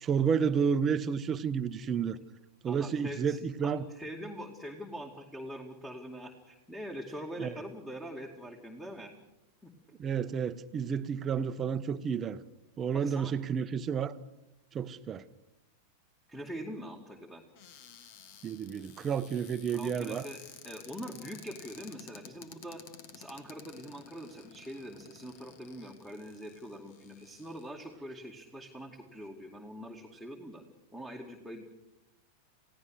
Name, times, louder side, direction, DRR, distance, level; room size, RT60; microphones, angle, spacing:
voice 1, 0.0-2.2 2.6-3.9 7.4-7.5 10.0-12.4 12.8-14.1 14.7-15.2 18.4-20.3, right 7 dB, 25° right, 13 dB, 1.0 m, -31 dB
voice 2, 2.7-9.1 9.6-9.7 12.9-13.3 16.3-17.4 19.7-22.8 23.1-30.6 30.9-31.7, equal, 5° left, 4 dB, 2.4 m, -43 dB
Cupboard open or close, 17.5-27.9 28.6-28.7 28.9-29.3, left 8 dB, 45° left, 2.1 m, -53 dB
29.5 x 16.5 x 6.6 m, 0.92 s
figure-of-eight pair, 90°, 0 cm